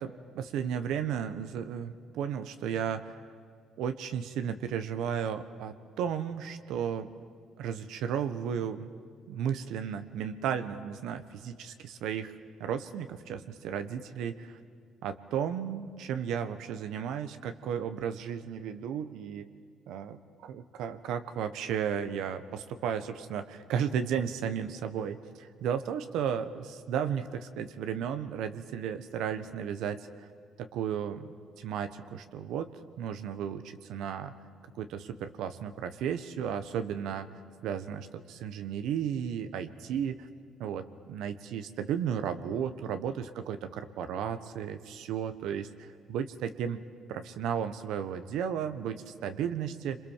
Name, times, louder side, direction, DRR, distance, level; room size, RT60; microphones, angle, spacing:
voice 1, 0.0-3.2 3.8-7.1 7.6-8.9 9.3-12.3 12.6-14.6 15.0-19.5 19.9-30.3 30.6-31.3 31.6-34.3 34.8-37.3 37.6-40.3 40.6-46.8 47.1-50.0, right 8 dB, 85° right, 9 dB, 1.3 m, -34 dB
28.5 x 27.0 x 7.4 m, 2.2 s
cardioid pair, 140°, 0 cm